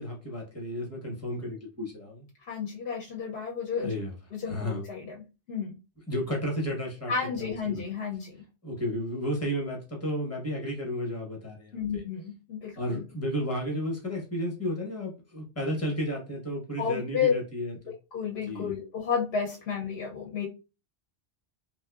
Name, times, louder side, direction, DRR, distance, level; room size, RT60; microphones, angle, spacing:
voice 1, 0.0-2.3 3.8-4.1 4.4-4.8 6.1-7.1 7.4-7.8 8.6-12.0 12.7-17.9 18.4-18.7, equal, 15° left, -1 dB, 0.7 m, -33 dB
voice 2, 2.5-3.9 4.3-5.1 5.5-5.8 7.1-8.3 11.7-13.0 16.8-17.3 18.1-20.5, left 6 dB, 65° left, -1 dB, 0.8 m, -31 dB
2.6 x 2.2 x 2.3 m, 0.30 s
omnidirectional pair, 1.2 m